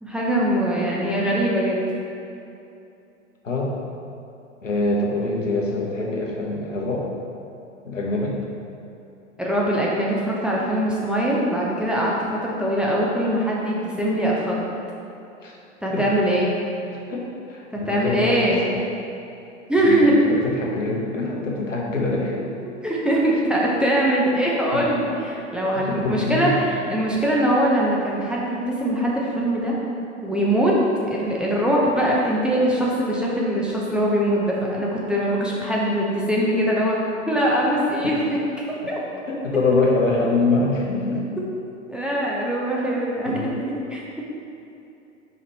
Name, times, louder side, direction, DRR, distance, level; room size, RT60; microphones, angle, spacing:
voice 1, 0.0-1.8 9.4-14.7 15.8-16.5 17.7-18.7 19.7-20.1 22.6-29.8 30.2-30.8 31.1-37.0 37.3-38.4 38.9-39.0 41.9-44.0, right 1 dB, ahead, -5 dB, 0.8 m, -22 dB
voice 2, 4.6-7.1 7.8-8.3 15.4-15.5 15.9-16.0 16.9-18.3 19.8-22.4 24.7-24.8 25.7-26.5 38.0-38.1 39.3-41.2 43.2-43.5, left 2 dB, 85° left, -2 dB, 1.1 m, -24 dB
5.1 x 5.0 x 4.2 m, 2.8 s
figure-of-eight pair, 90°, 37 cm